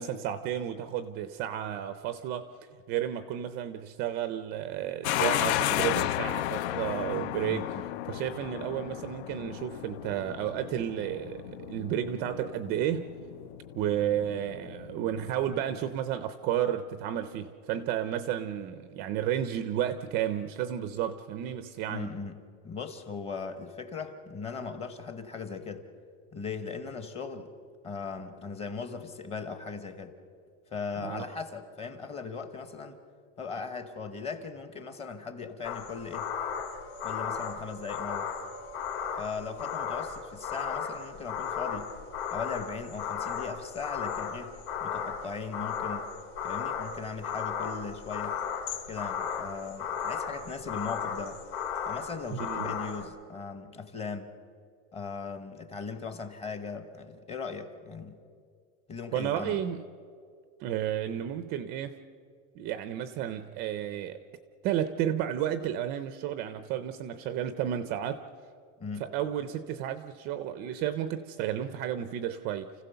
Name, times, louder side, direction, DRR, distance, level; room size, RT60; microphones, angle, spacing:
voice 1, 0.0-2.5 2.9-7.8 8.1-13.1 13.7-22.1 31.0-31.2 52.3-52.7 59.1-59.8 60.6-62.0 62.6-64.2 64.6-68.2 69.0-72.7, right 10 dB, 30° right, 12 dB, 0.5 m, -32 dB
sound 1, 5.0-15.8, left 15 dB, 60° left, 0.5 m, -34 dB
voice 2, 7.4-7.9 21.9-25.9 26.3-27.5 27.8-30.2 30.7-33.0 33.4-36.3 37.0-38.3 39.2-41.9 42.3-46.1 46.4-48.4 48.9-51.4 51.9-54.3 54.9-58.2 58.9-59.6 68.8-69.1, left 5 dB, 15° left, 9 dB, 1.0 m, -38 dB
sound 2, 35.6-53.0, left 7 dB, 45° left, 2.4 m, -35 dB
29.5 x 15.5 x 6.8 m, 2.2 s
supercardioid pair, 175°, 36 cm